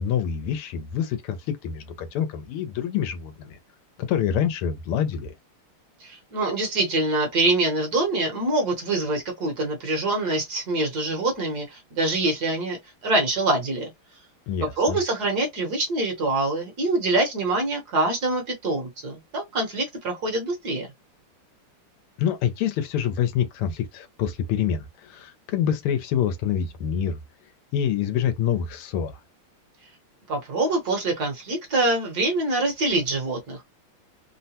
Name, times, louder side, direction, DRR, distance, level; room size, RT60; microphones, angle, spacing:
voice 1, 0.0-3.6 4.0-5.3 14.5-15.0 22.2-27.2 27.7-29.2, left 9 dB, 85° left, 1.6 m, -26 dB
voice 2, 6.0-12.8 13.0-13.9 14.6-20.9 30.3-33.6, right 2 dB, 55° right, 1.3 m, -25 dB
3.7 x 2.1 x 2.8 m
omnidirectional pair, 2.4 m